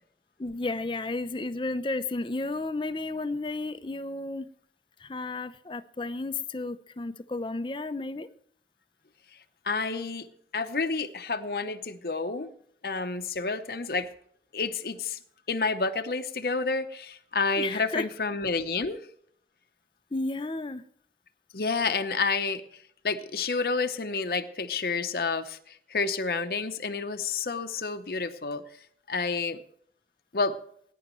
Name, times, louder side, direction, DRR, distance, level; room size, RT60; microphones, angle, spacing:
voice 1, 0.4-4.5 5.0-8.3 17.6-18.1 20.1-20.8, left 2 dB, 25° left, 0.5 m, -32 dB
voice 2, 9.7-10.3 10.5-12.5 12.8-14.1 14.5-15.2 15.5-19.0 21.5-22.6 23.0-28.6 29.1-29.6 30.3-30.6, left 4 dB, 60° left, 0.8 m, -29 dB
19.0 x 10.0 x 3.1 m
head